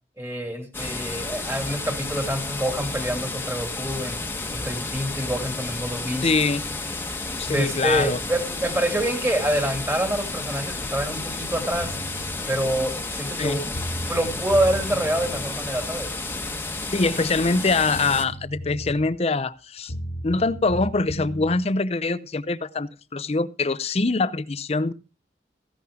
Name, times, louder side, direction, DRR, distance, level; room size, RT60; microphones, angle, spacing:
voice 1, 0.2-4.2 4.5-6.3 7.5-12.0 12.5-13.6 14.1-16.1, right 1 dB, 15° right, 5 dB, 2.4 m, -26 dB
sound 1, 0.7-18.2, left 3 dB, 15° left, 1.2 m, -32 dB
voice 2, 6.2-6.6 7.4-8.2 13.4-13.6 16.9-19.9 20.2-24.9, left 3 dB, 35° left, 15 dB, 0.6 m, -24 dB
sound 2, 11.8-12.4 13.4-13.5 13.7-15.4 17.6-17.7 17.9-19.1 19.9-21.6, equal, 75° left, 1.6 m, -34 dB
15.0 x 11.5 x 3.7 m, 0.33 s
head